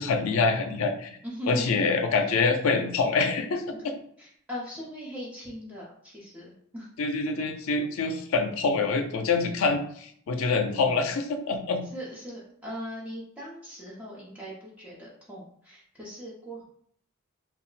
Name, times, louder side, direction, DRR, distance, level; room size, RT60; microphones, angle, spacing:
voice 1, 0.0-1.1 1.5-3.9 7.0-11.9, left 4 dB, 85° left, 6 dB, 0.4 m, -26 dB
voice 2, 1.2-1.8 3.7-3.8 4.2-6.9 11.9-16.7, equal, 5° right, -7 dB, 0.6 m, -39 dB
2.3 x 2.1 x 3.8 m, 0.64 s
head